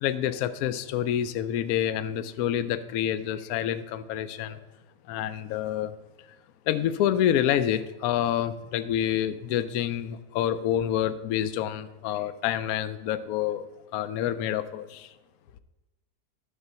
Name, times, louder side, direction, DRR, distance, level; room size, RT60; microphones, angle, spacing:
voice 1, 0.0-4.6 5.1-5.9 6.7-13.7 13.9-15.1, left 10 dB, 70° left, 12 dB, 1.0 m, -27 dB
11.0 x 3.9 x 6.7 m, 1.1 s
omnidirectional pair, 1.7 m